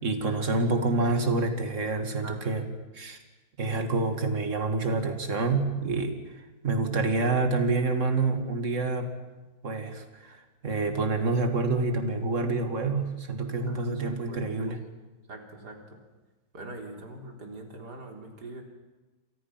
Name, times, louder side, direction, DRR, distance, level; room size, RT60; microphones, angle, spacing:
voice 1, 0.0-2.6 2.9-3.2 3.6-6.2 6.6-9.1 9.6-14.8, right 3 dB, 40° right, 6 dB, 2.6 m, -27 dB
voice 2, 13.7-14.7 15.3-16.0 16.5-18.6, right 2 dB, 55° right, 2 dB, 4.3 m, -43 dB
29.0 x 27.0 x 6.0 m, 1.2 s
omnidirectional pair, 2.1 m